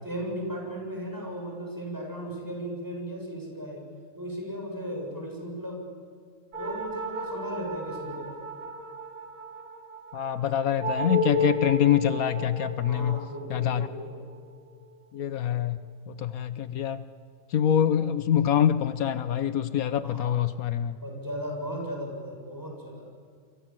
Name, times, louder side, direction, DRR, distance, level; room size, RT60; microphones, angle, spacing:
voice 1, 0.0-3.8 4.2-5.9 6.6-8.4 12.9-14.2 20.0-20.4 21.0-23.1, equal, 15° right, -1 dB, 7.8 m, -36 dB
sound 1, 6.5-15.4, left 1 dB, 60° right, 3.6 m, -34 dB
voice 2, 10.1-13.2 13.5-13.9 15.1-15.8 16.1-17.0 17.5-21.0, left 10 dB, 80° left, 13 dB, 1.4 m, -25 dB
29.0 x 24.5 x 7.6 m, 2.1 s
omnidirectional pair, 1.5 m